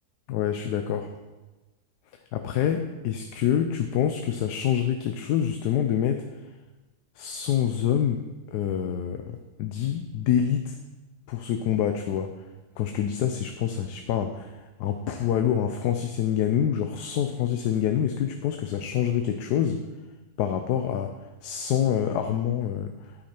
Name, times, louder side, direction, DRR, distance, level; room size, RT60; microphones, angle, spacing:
voice 1, 0.3-1.1 2.3-6.2 7.2-10.8 11.3-12.3 12.8-19.8 20.4-21.2 21.4-22.9, left 9 dB, 85° left, 7 dB, 1.2 m, -26 dB
9.8 x 8.8 x 4.4 m, 1.2 s
omnidirectional pair, 1.7 m